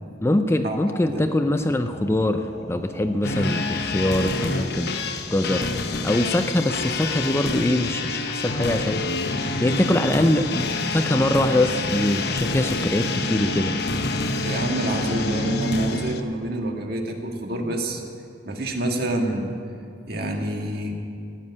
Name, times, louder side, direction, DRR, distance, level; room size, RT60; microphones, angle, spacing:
voice 1, 0.2-4.9 5.3-5.7 6.0-9.0 9.6-13.7, left 1 dB, 15° left, 7 dB, 0.5 m, -23 dB
sound 1, 1.5-16.5, equal, 35° left, 1.6 m, -42 dB
sound 2, 3.2-16.2, left 3 dB, 60° left, 0.9 m, -27 dB
voice 2, 14.4-18.0 18.4-19.5 20.1-20.9, right 1 dB, 55° right, 2 dB, 1.7 m, -27 dB
16.0 x 7.6 x 9.7 m, 2.3 s
head